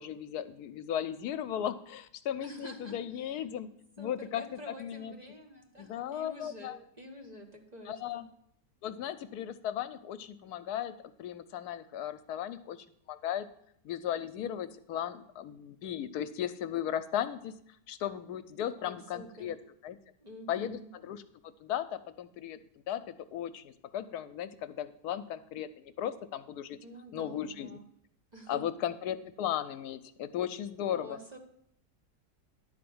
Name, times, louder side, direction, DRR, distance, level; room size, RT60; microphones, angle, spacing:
voice 1, 0.0-3.7 4.0-4.4 4.8-5.1 5.8-6.8 7.9-8.2 8.8-10.9 11.2-12.8 13.1-13.5 13.8-17.5 17.9-19.6 19.8-20.0 20.5-21.2 21.6-22.6 22.9-26.8 27.1-27.7 28.5-31.4, left 10 dB, 75° left, 12 dB, 1.1 m, -36 dB
voice 2, 2.4-3.4 4.0-8.2 18.8-19.5 20.2-20.9 26.8-27.8 28.3-28.6 31.0-31.4, equal, 30° right, 2 dB, 1.2 m, -48 dB
11.0 x 4.6 x 7.8 m, 0.71 s
omnidirectional pair, 1.7 m